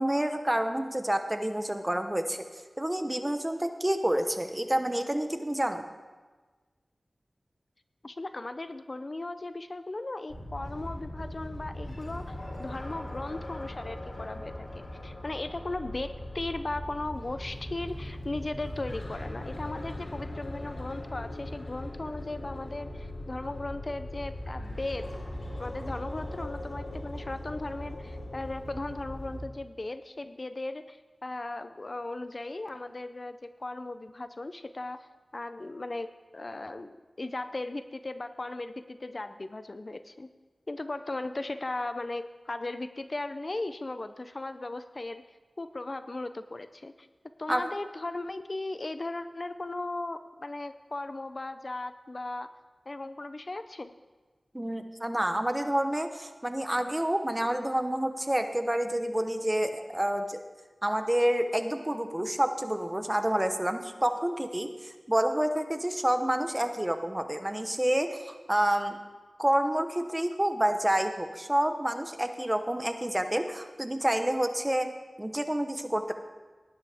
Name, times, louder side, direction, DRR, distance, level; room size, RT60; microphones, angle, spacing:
voice 1, 0.0-2.5 2.8-5.9 47.5-47.6 54.5-60.4 60.8-69.0 69.4-74.9 75.2-76.1, right 1 dB, 15° right, 7 dB, 1.0 m, -28 dB
voice 2, 8.0-25.2 25.6-35.1 35.3-40.3 40.7-45.2 45.6-47.1 47.4-52.5 52.9-53.9, left 2 dB, 50° left, 11 dB, 0.5 m, -37 dB
sound 1, 10.3-29.4, left 1 dB, 80° left, 3.1 m, -39 dB
17.5 x 10.0 x 3.5 m, 1.3 s
wide cardioid pair, 60°, 0 cm